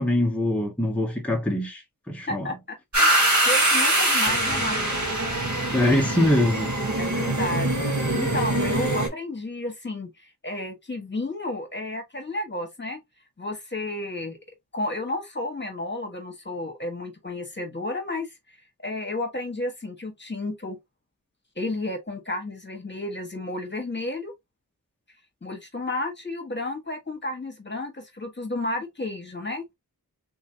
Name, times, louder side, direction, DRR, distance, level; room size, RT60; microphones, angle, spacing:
voice 1, 0.0-1.8 2.1-2.5 5.7-6.7, left 1 dB, 5° left, 1.2 m, -23 dB
voice 2, 2.3-5.1 7.0-13.0 13.4-14.4 14.7-18.3 18.8-20.8 21.5-24.3 25.4-29.7, left 2 dB, 30° left, 1.5 m, -32 dB
sound 1, 2.9-9.1, right 1 dB, 55° right, 2.0 m, -23 dB
3.6 x 3.1 x 2.7 m
wide cardioid pair, 65°, 34 cm